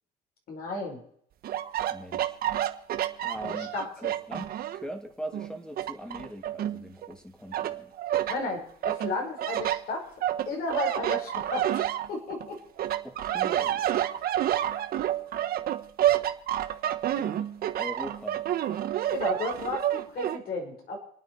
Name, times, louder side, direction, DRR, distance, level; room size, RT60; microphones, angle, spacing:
voice 1, 0.5-1.0 3.4-3.9 8.3-10.0 10.5-12.6 19.1-21.0, left 3 dB, 60° left, 0 dB, 5.1 m, -33 dB
sound 1, 1.4-4.9 5.3-7.1 7.5-8.4 8.8-12.5 12.8-20.4, right 12 dB, 65° right, 1.2 m, -29 dB
voice 2, 1.9-2.4 3.2-7.9 13.0-13.9 17.2-18.4, equal, 5° left, 5 dB, 2.7 m, -41 dB
28.0 x 9.4 x 4.6 m, 0.67 s
cardioid pair, 110°, 17 cm